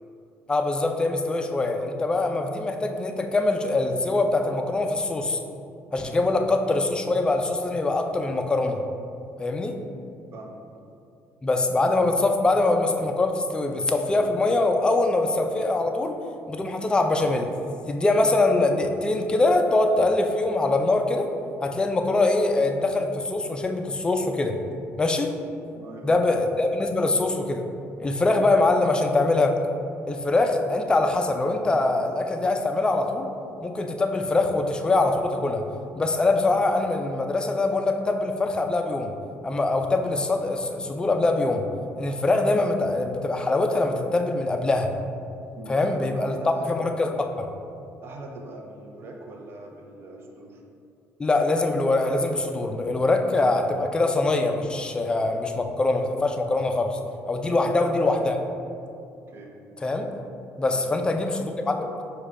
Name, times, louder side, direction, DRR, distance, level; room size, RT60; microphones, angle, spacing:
voice 1, 0.5-5.4 5.9-8.8 9.4-9.8 11.4-16.2 16.5-17.5 17.9-21.3 21.6-24.6 25.0-25.3 26.0-27.6 28.0-29.6 30.1-33.3 33.6-35.6 35.9-39.1 39.4-41.7 42.0-44.9 45.7-46.4 46.7-47.5 51.2-57.0 57.3-58.4 59.8-60.1 60.6-61.9, left 2 dB, 15° left, 4 dB, 0.3 m, -23 dB
voice 2, 6.0-6.4 10.3-10.6 25.7-26.2 45.6-46.7 48.0-50.6 57.4-57.7 58.3-58.4 59.3-59.5 60.7-60.8, right 2 dB, 45° right, 1 dB, 0.6 m, -41 dB
4.7 x 2.3 x 4.5 m, 2.6 s
cardioid pair, 120°, 5 cm